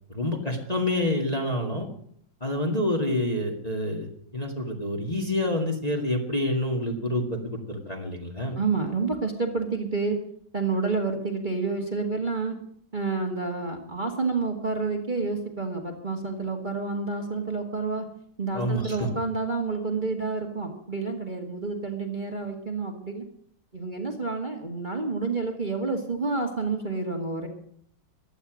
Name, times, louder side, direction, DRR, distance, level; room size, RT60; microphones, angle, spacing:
voice 1, 0.1-1.9 2.4-8.6 18.5-19.1, left 1 dB, 20° left, 1 dB, 2.0 m, -28 dB
voice 2, 8.6-10.2 10.5-12.6 12.9-18.1 18.4-23.2 23.7-27.5, right 4 dB, 25° right, 1 dB, 1.9 m, -29 dB
16.0 x 11.5 x 6.3 m, 0.64 s
omnidirectional pair, 2.2 m